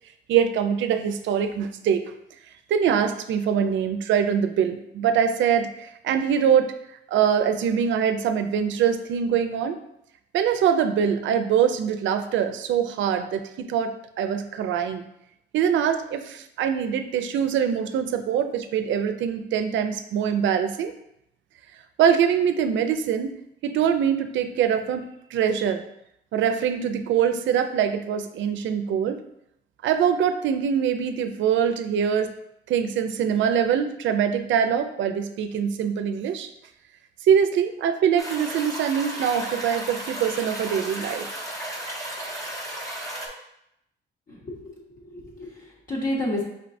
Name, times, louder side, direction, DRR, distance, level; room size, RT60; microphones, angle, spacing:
voice 1, 0.3-2.0 2.7-6.7 7.1-9.8 10.3-15.0 15.5-20.9 22.0-25.0 25.3-25.8 26.3-29.2 29.8-32.3 32.7-36.5 37.2-41.3, right 8 dB, 85° right, 8 dB, 0.4 m, -23 dB
sound 1, 38.2-43.3, right 1 dB, 15° left, 0.7 m, -34 dB
voice 2, 44.3-46.4, left 1 dB, 45° left, -5 dB, 1.1 m, -31 dB
5.3 x 3.2 x 2.6 m, 0.79 s
wide cardioid pair, 155°, 19 cm